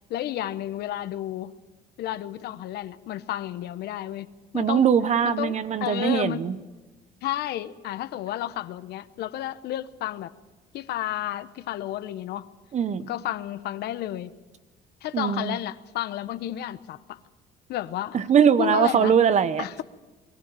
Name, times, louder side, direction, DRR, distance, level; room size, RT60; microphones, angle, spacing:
voice 1, 0.1-1.5 2.0-4.9 5.2-6.4 7.2-10.3 10.7-12.5 13.1-14.3 15.0-17.2 17.7-18.2 18.6-19.2 19.6-19.8, left 13 dB, 75° left, 13 dB, 1.0 m, -32 dB
voice 2, 4.5-6.6 12.7-13.1 15.1-15.6 18.1-19.8, right 7 dB, 45° right, 14 dB, 1.0 m, -21 dB
22.5 x 14.5 x 9.0 m, 1.2 s
cardioid pair, 110°, 17 cm